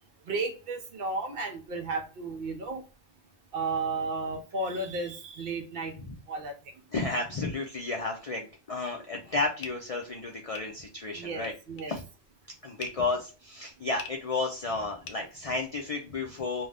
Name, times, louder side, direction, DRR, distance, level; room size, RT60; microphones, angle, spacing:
voice 1, 0.2-2.8 3.5-5.9 6.3-6.5 11.1-11.9, right 3 dB, 60° right, 6 dB, 0.7 m, -33 dB
voice 2, 6.9-11.5 11.9-12.0 12.6-16.7, left 3 dB, 60° left, 1 dB, 0.3 m, -32 dB
sound 1, 9.6-16.0, left 6 dB, 90° left, 0.9 m, -47 dB
2.5 x 2.2 x 3.2 m, 0.35 s
omnidirectional pair, 1.2 m